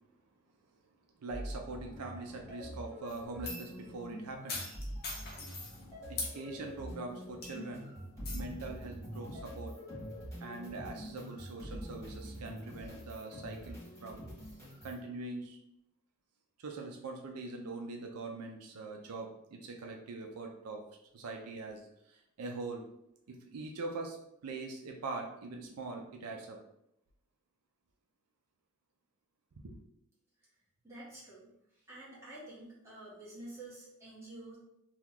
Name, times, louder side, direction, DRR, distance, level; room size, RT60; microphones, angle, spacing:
voice 1, 1.2-4.8 6.1-7.9 8.3-9.7 10.4-14.2 14.8-15.6 16.6-20.9 21.1-21.8 22.1-22.8 23.3-24.2 24.4-26.6 29.6-29.8, right 3 dB, 80° right, 2 dB, 0.5 m, -43 dB
sound 1, 1.3-15.0, equal, 15° left, 1.4 m, -45 dB
sound 2, 3.1-3.8 4.5-5.8 6.2-6.4 6.9-7.0 7.4-7.7 8.3-8.4, left 3 dB, 45° left, 0.7 m, -40 dB
voice 2, 30.8-31.5 31.9-34.6, right 2 dB, 10° right, -9 dB, 1.3 m, -49 dB
2.9 x 2.3 x 3.6 m, 0.79 s
head